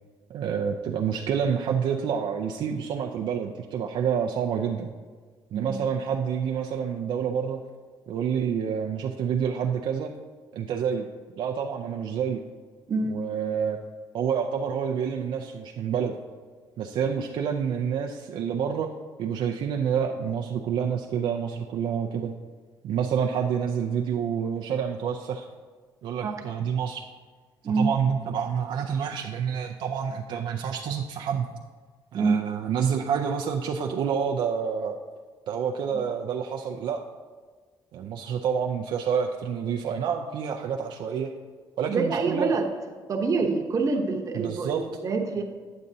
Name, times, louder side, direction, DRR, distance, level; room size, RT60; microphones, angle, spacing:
voice 1, 0.3-4.9 5.5-7.6 8.1-10.1 10.5-11.1 11.4-12.4 13.1-13.8 14.1-16.1 16.8-18.9 19.2-22.3 22.8-25.5 26.0-27.0 27.6-31.5 32.1-35.0 35.5-37.0 37.9-41.3 41.8-42.5 44.3-44.9, right 7 dB, 70° right, 2 dB, 0.4 m, -28 dB
voice 2, 12.9-13.2 26.2-26.4 27.6-27.9 32.1-32.4 41.9-42.6 43.1-45.4, right 4 dB, 40° right, 3 dB, 0.9 m, -26 dB
8.6 x 8.2 x 2.7 m, 1.5 s
cardioid pair, 100°, 8 cm